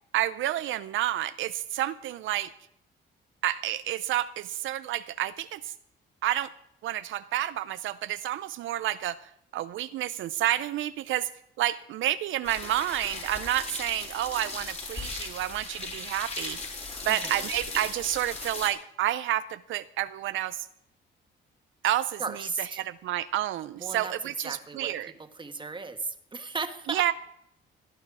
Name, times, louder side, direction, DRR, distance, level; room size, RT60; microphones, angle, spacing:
voice 1, 0.1-2.5 3.4-5.7 6.2-6.5 6.8-11.3 11.6-16.6 17.0-20.7 21.8-25.1 26.9-27.1, right 13 dB, 80° right, 13 dB, 0.5 m, -30 dB
sound 1, 12.4-18.7, left 3 dB, 30° left, 3.8 m, -38 dB
voice 2, 17.1-17.4 22.2-22.8 23.8-24.1 24.4-27.1, right 4 dB, 25° right, 8 dB, 1.5 m, -36 dB
18.0 x 9.7 x 4.8 m, 0.77 s
cardioid pair, 90°, 20 cm